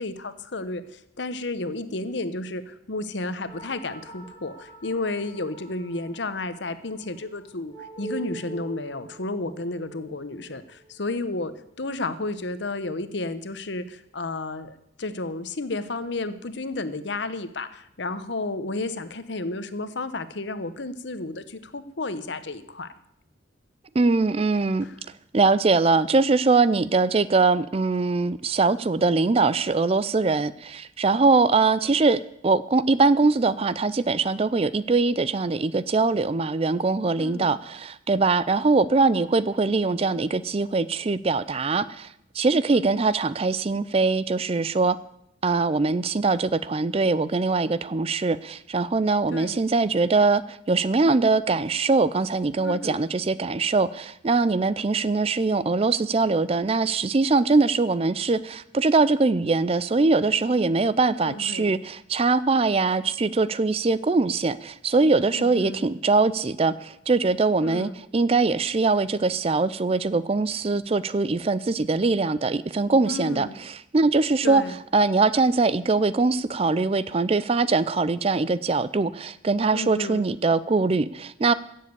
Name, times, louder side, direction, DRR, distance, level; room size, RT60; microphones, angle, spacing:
voice 1, 0.0-11.5 11.8-22.9 24.8-25.0 37.2-37.5 42.7-43.0 49.3-49.6 52.6-53.0 61.2-61.8 65.3-65.9 67.6-68.0 73.1-73.6 74.4-74.7 79.7-80.3, left 2 dB, 65° left, 12 dB, 1.0 m, -32 dB
sound 1, 3.4-12.3, right 4 dB, 25° left, 2.3 m, -44 dB
voice 2, 23.9-24.9 25.3-42.1 42.3-45.0 45.4-74.6 74.9-81.5, right 3 dB, 30° right, 16 dB, 0.4 m, -22 dB
15.5 x 7.5 x 8.1 m, 0.77 s
head